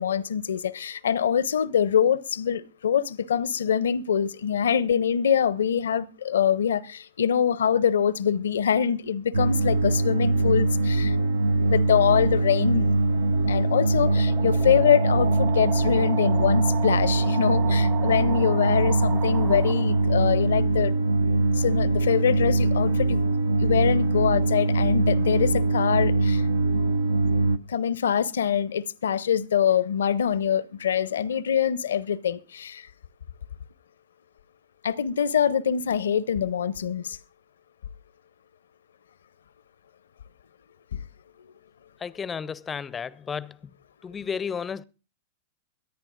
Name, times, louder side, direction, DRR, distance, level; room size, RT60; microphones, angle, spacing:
voice 1, 0.0-11.2 11.7-12.9 13.5-21.0 21.5-23.3 23.6-26.5 27.7-32.9 34.8-37.2 40.9-41.0, left 8 dB, 75° left, 0.6 m, -24 dB
sound 1, 9.3-27.6, right 2 dB, 80° right, 0.6 m, -23 dB
sound 2, 12.8-20.3, right 7 dB, 30° right, 0.9 m, -36 dB
voice 2, 42.0-43.6 44.0-44.8, left 6 dB, 20° left, 0.5 m, -32 dB
23.0 x 10.5 x 2.5 m
hypercardioid pair, 100°, 0 cm